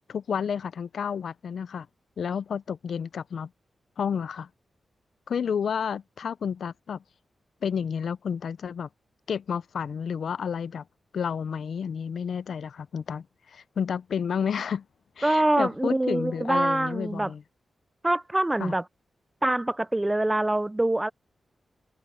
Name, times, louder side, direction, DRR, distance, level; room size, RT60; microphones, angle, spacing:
voice 1, 0.1-1.9 2.2-3.5 4.0-4.5 5.3-7.0 7.6-8.9 9.3-10.8 11.1-14.8 15.2-17.4 18.6-18.7, left 7 dB, 70° left, 0.4 m, -31 dB
voice 2, 15.2-17.3 18.0-18.8 19.4-21.1, right 1 dB, 10° right, 0.3 m, -24 dB
wide cardioid pair, 165°, 0 cm